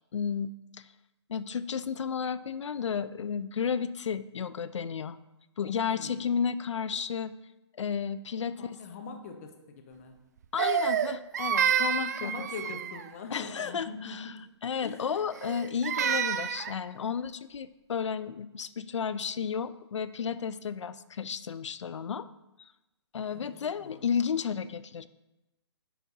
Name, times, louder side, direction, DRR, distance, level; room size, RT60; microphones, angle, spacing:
voice 1, 0.1-0.9 1.3-5.2 5.6-7.3 7.8-8.8 10.5-12.3 13.3-14.3 14.6-22.3 22.6-22.7 23.1-25.1, left 7 dB, 85° left, 15 dB, 0.5 m, -32 dB
voice 2, 5.8-6.4 8.5-10.2 12.2-14.3 14.8-15.1 23.3-23.5 23.8-24.0, left 4 dB, 30° left, 5 dB, 0.8 m, -42 dB
Crying sobbing, 10.6-13.1 15.3-16.8, right 8 dB, 35° right, 0.3 m, -29 dB
9.4 x 3.5 x 5.5 m, 0.99 s
hypercardioid pair, 165°, 15 cm